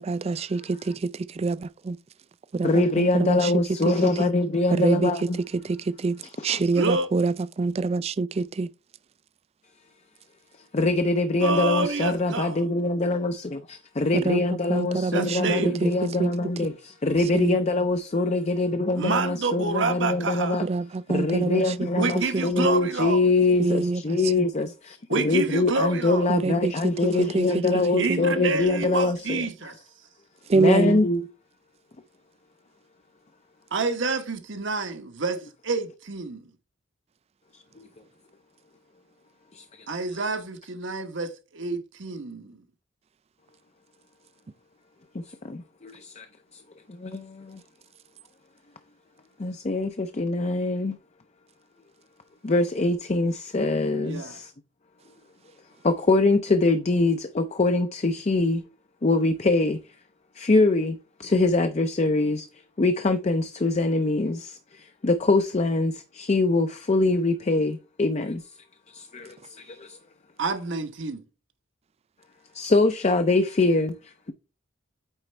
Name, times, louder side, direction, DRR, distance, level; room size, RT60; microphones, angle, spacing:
voice 1, 0.0-2.0 2.5-4.3 4.7-8.7 14.1-16.3 16.6-16.7 17.2-17.6 20.6-22.7 23.6-24.5 26.3-28.2 30.5-31.0, right 3 dB, 30° right, 0.3 m, -26 dB
voice 2, 2.6-5.4 6.5-6.6 10.7-20.7 21.1-29.5 30.6-31.2 37.5-37.9 39.5-39.9 45.1-46.3 46.5-46.6 46.9-47.6 49.4-51.0 52.4-54.5 55.8-58.6 59.0-59.8 60.4-62.5 62.8-68.5 68.9-70.0 72.5-74.3, left 2 dB, 35° left, 0.5 m, -24 dB
voice 3, 6.8-7.1 11.4-12.6 15.1-15.8 19.0-20.6 22.0-23.3 25.1-26.3 28.0-29.7 33.7-36.4 39.9-42.6 54.0-54.4 70.4-71.2, right 3 dB, 65° right, 1.1 m, -28 dB
9.0 x 4.3 x 3.3 m
head